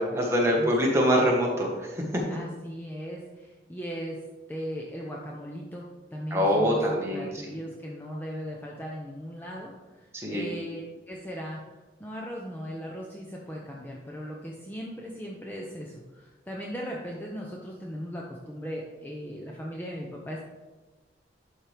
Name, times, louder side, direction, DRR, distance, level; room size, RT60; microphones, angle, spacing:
voice 1, 0.0-2.2 6.3-7.5 10.1-10.5, equal, 15° right, -2 dB, 1.3 m, -25 dB
voice 2, 2.3-4.2 4.5-10.8 11.1-11.6 12.0-20.4, equal, 10° left, -2 dB, 0.6 m, -38 dB
11.5 x 4.4 x 3.3 m, 1.2 s
head